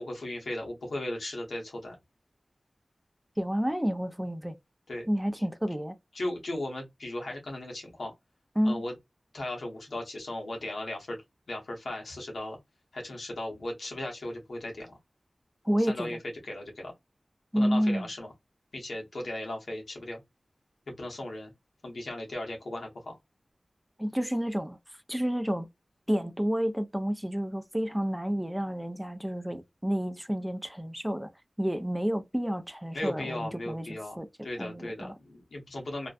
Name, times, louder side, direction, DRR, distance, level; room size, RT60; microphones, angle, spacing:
voice 1, 0.0-2.0 4.9-5.1 6.1-8.1 8.6-8.9 9.3-11.2 11.5-12.6 12.9-14.9 15.9-16.2 16.4-16.9 17.5-18.3 18.7-20.2 20.9-21.5 21.8-23.1 32.9-34.2 34.4-36.1, left 1 dB, 90° left, 0.9 m, -36 dB
voice 2, 3.4-4.6 5.1-6.0 8.6-8.8 15.6-16.2 17.5-18.1 24.0-24.8 25.1-25.7 26.1-31.3 31.6-34.3 34.6-35.2, equal, 5° right, 0.4 m, -30 dB
2.5 x 2.1 x 2.4 m
wide cardioid pair, 45°, 0 cm